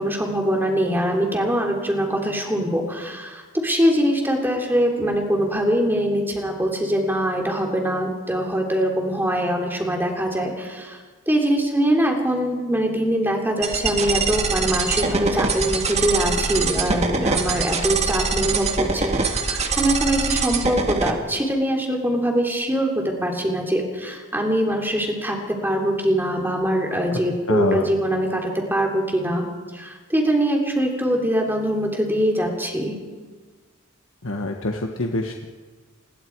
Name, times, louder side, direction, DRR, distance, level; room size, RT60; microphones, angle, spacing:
voice 1, 0.0-25.4 25.6-29.5 29.7-33.0, equal, 10° right, 1 dB, 3.3 m, -23 dB
sound 1, 13.6-21.1, right 4 dB, 30° right, 1.9 m, -23 dB
voice 2, 27.5-27.9 34.2-35.5, left 2 dB, 70° left, 3 dB, 1.4 m, -25 dB
28.0 x 21.5 x 4.7 m, 1.4 s
head